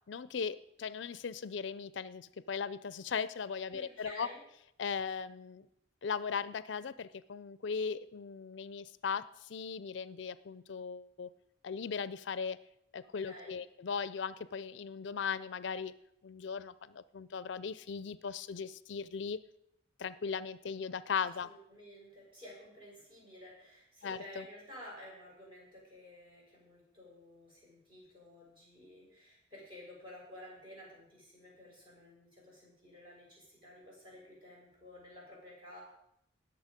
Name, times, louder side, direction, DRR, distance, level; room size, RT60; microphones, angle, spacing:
voice 1, 0.1-4.3 4.8-5.7 6.0-11.3 11.6-12.6 12.9-15.9 16.2-19.4 20.0-21.5 24.0-24.4, left 6 dB, 70° left, 17 dB, 0.4 m, -38 dB
voice 2, 3.7-4.4 13.2-13.6 21.4-35.8, left 1 dB, 25° right, -4 dB, 5.7 m, -52 dB
18.5 x 7.0 x 5.1 m, 0.76 s
head